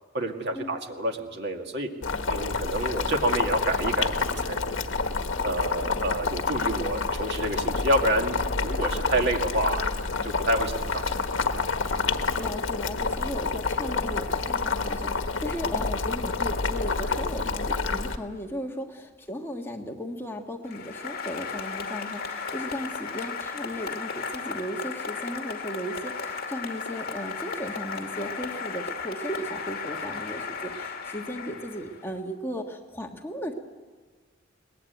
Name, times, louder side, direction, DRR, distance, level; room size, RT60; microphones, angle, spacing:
voice 1, 0.1-1.9 2.3-4.8 5.4-9.9 10.2-11.4, right 1 dB, 60° right, 3 dB, 2.1 m, -28 dB
Boiling, 2.0-18.2, left 4 dB, 70° left, 1.3 m, -28 dB
voice 2, 12.1-33.5, equal, 10° left, 2 dB, 1.5 m, -36 dB
Applause, 20.6-32.2, left 5 dB, 50° left, 2.3 m, -35 dB
22.5 x 19.5 x 9.3 m, 1.4 s
head